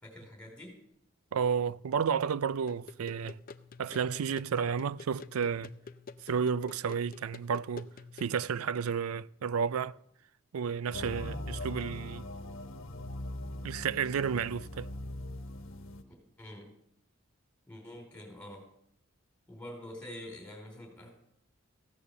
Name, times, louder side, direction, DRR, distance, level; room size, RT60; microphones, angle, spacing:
voice 1, 0.0-0.8 16.4-16.7 17.7-18.7 19.5-21.1, left 1 dB, 5° left, 3.9 m, -46 dB
voice 2, 1.3-3.4 3.8-5.7 6.3-7.9 8.2-10.0 10.5-12.2 13.6-14.9, right 6 dB, 85° right, 0.4 m, -31 dB
sound 1, 2.7-8.4, left 4 dB, 40° left, 0.5 m, -49 dB
sound 2, 10.9-16.0, left 1 dB, 65° left, 1.2 m, -41 dB
15.5 x 8.6 x 6.9 m
head